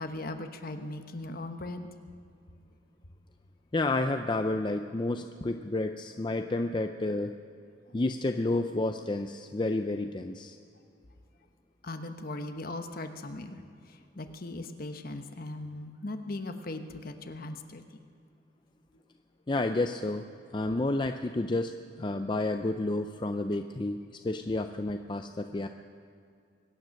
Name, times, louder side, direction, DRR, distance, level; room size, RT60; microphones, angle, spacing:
voice 1, 0.0-1.9 11.8-13.6 13.9-17.8, left 2 dB, 50° left, 6 dB, 1.1 m, -39 dB
voice 2, 3.7-7.3 7.9-10.6 19.5-20.2 20.5-21.7 22.0-25.7, left 2 dB, 25° left, 6 dB, 0.4 m, -30 dB
23.5 x 9.3 x 6.5 m, 2.4 s
head